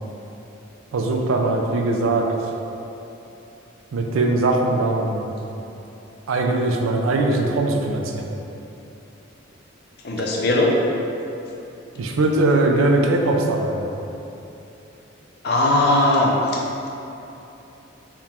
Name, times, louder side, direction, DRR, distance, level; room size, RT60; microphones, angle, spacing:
voice 1, 0.9-2.3 3.9-5.3 6.3-8.3 12.0-13.9, right 2 dB, 75° right, 2 dB, 0.4 m, -20 dB
voice 2, 10.0-10.7 15.4-16.6, left 1 dB, 50° left, -2 dB, 0.5 m, -19 dB
3.6 x 2.4 x 4.2 m, 2.9 s
head